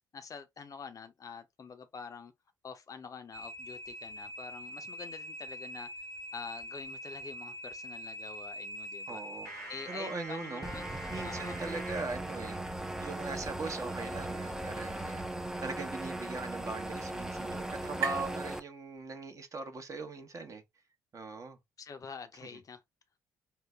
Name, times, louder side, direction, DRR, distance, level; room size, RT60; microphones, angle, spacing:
voice 1, 0.1-2.3 2.6-6.1 6.3-9.2 9.7-10.9 11.2-11.6 21.8-22.8, left 5 dB, 40° left, 0.6 m, -46 dB
sound 1, 3.3-12.0, equal, 85° right, 0.9 m, -44 dB
voice 2, 9.1-9.5 9.9-10.7 11.1-12.6 13.0-20.6 21.1-21.6 22.5-22.6, right 3 dB, 35° right, 0.9 m, -40 dB
sound 2, 10.6-18.6, right 1 dB, 5° right, 0.5 m, -38 dB
sound 3, 15.6-19.4, right 7 dB, 65° right, 1.3 m, -43 dB
3.8 x 2.1 x 3.4 m
hypercardioid pair, 45°, 9 cm